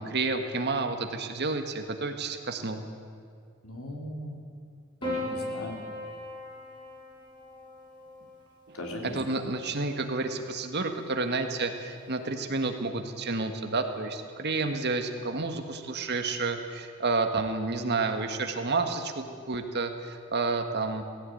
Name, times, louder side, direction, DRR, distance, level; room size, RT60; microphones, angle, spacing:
voice 1, 0.0-2.8 9.0-21.0, right 3 dB, 50° right, 6 dB, 1.6 m, -30 dB
voice 2, 3.6-4.4 5.0-5.9 8.7-9.5, left 1 dB, 75° left, 1 dB, 3.6 m, -38 dB
Piano, 5.0-9.5 10.7-11.4, left 1 dB, 25° left, 6.5 m, -39 dB
18.0 x 16.0 x 9.2 m, 2.2 s
head